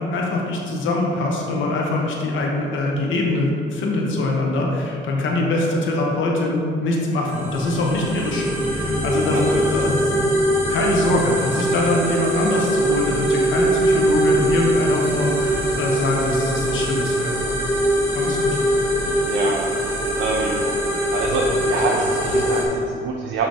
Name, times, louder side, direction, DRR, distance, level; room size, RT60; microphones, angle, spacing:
voice 1, 0.0-10.3 10.7-17.4 18.1-18.6, left 2 dB, 75° left, -1 dB, 1.0 m, -23 dB
sound 1, 7.3-22.7, right 1 dB, 10° right, 1.3 m, -22 dB
voice 2, 9.3-9.7 19.3-19.6 20.2-20.6 21.1-23.5, right 4 dB, 70° right, -1 dB, 0.7 m, -25 dB
6.6 x 3.0 x 4.8 m, 2.3 s
cardioid pair, 90°, 20 cm